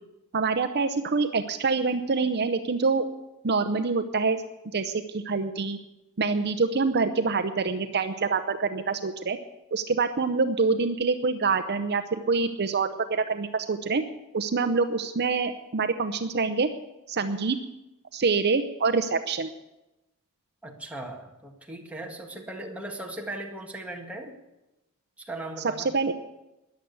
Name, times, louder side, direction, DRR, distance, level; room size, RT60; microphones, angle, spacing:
voice 1, 0.3-3.1 3.4-4.4 4.7-5.8 6.2-9.4 9.7-14.0 14.3-16.7 17.1-17.6 18.1-19.5 25.9-26.1, right 4 dB, 50° right, 8 dB, 0.7 m, -26 dB
voice 2, 20.6-24.4 25.2-25.9, right 1 dB, 5° right, 0 dB, 1.7 m, -38 dB
14.0 x 10.5 x 8.1 m, 0.98 s
head